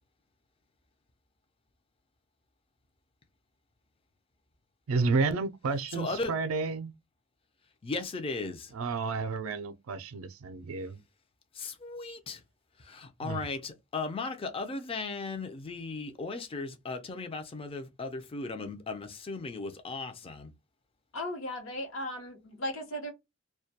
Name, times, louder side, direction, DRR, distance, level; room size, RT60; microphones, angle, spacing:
voice 1, 4.9-6.9 8.7-11.0 13.2-13.5, right 4 dB, 80° right, 0.4 m, -31 dB
voice 2, 5.9-6.3 7.8-8.7 11.6-12.4 12.8-20.5, left 3 dB, 25° left, 0.4 m, -36 dB
voice 3, 21.1-23.1, left 1 dB, 65° left, 0.9 m, -36 dB
2.2 x 2.2 x 2.7 m
head